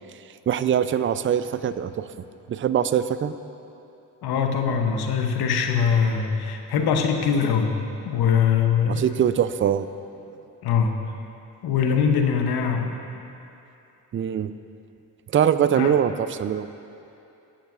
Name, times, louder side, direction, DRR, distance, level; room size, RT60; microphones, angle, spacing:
voice 1, 0.5-2.1 2.5-3.3 8.9-9.9 14.1-14.5 15.3-16.7, right 9 dB, 35° right, 12 dB, 0.4 m, -22 dB
voice 2, 4.2-7.8 8.1-9.1 10.6-10.9 11.6-12.9 15.8-16.0, left 6 dB, 75° left, 4 dB, 0.8 m, -22 dB
14.0 x 7.3 x 2.4 m, 2.8 s
supercardioid pair, 45°, 38 cm